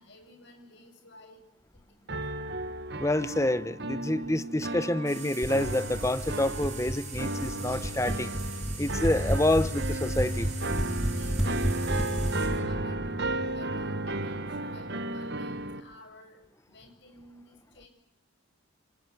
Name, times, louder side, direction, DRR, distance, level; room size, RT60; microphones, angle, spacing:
voice 1, 0.0-1.4 1.7-2.3 11.1-17.9, left 2 dB, 55° left, 5 dB, 7.2 m, -53 dB
sound 1, 2.1-15.8, right 2 dB, 55° right, 1.4 m, -34 dB
voice 2, 2.9-8.3 8.8-10.5, left 1 dB, 15° left, 14 dB, 0.9 m, -28 dB
sound 2, 5.0-12.5, right 6 dB, 35° right, 7.8 m, -43 dB
sound 3, 5.4-14.1, equal, 5° right, 1.7 m, -32 dB
26.0 x 19.5 x 9.6 m, 0.82 s
head